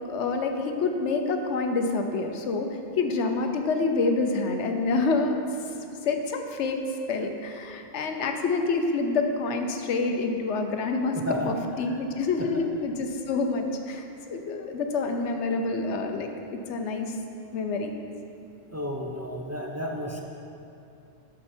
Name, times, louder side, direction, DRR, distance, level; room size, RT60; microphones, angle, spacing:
voice 1, 0.1-2.7 3.0-5.4 6.0-6.8 7.1-11.2 11.5-17.1 17.5-17.9, left 3 dB, 75° left, 5 dB, 1.0 m, -27 dB
voice 2, 11.1-11.5 11.9-12.0 12.4-12.5 18.7-20.2, equal, 20° right, 0 dB, 0.4 m, -32 dB
12.5 x 5.2 x 4.4 m, 2.7 s
omnidirectional pair, 1.2 m